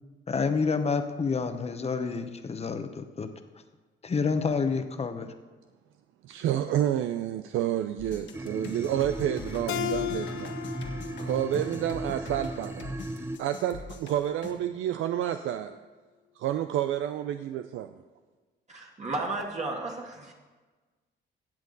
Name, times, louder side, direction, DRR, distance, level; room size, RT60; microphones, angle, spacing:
voice 1, 0.3-3.3 4.0-5.3, left 5 dB, 30° left, 8 dB, 1.0 m, -28 dB
voice 2, 6.2-10.6 11.2-12.9 13.4-15.8 16.4-17.9, right 11 dB, 80° right, 9 dB, 0.5 m, -29 dB
sound 1, 8.0-14.5, left 4 dB, 65° left, 1.6 m, -44 dB
sound 2, 8.3-13.4, right 1 dB, 10° right, 0.6 m, -37 dB
Keyboard (musical), 9.7-12.9, left 13 dB, 85° left, 0.5 m, -36 dB
voice 3, 18.7-20.3, right 2 dB, 35° right, -1 dB, 1.8 m, -33 dB
16.5 x 7.6 x 4.0 m, 1.3 s
cardioid pair, 90°, 20 cm